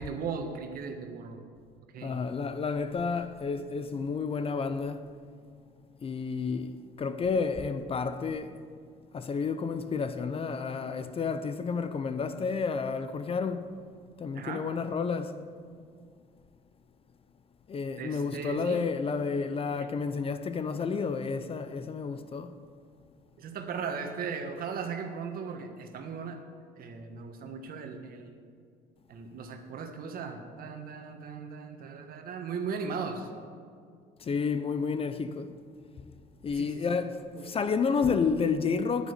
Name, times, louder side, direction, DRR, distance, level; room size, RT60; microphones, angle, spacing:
voice 1, 0.0-1.4 1.9-2.2 14.3-14.6 18.0-18.9 19.8-19.9 23.4-26.4 26.8-28.3 29.1-33.3 36.5-37.0 37.4-37.5, right 5 dB, 60° right, 1.5 m, -37 dB
voice 2, 2.0-5.1 6.0-8.6 9.1-13.7 14.2-15.4 17.7-22.5 34.2-35.5 36.4-39.1, left 5 dB, 35° left, 0.7 m, -30 dB
10.5 x 9.8 x 6.7 m
cardioid pair, 110°, 17 cm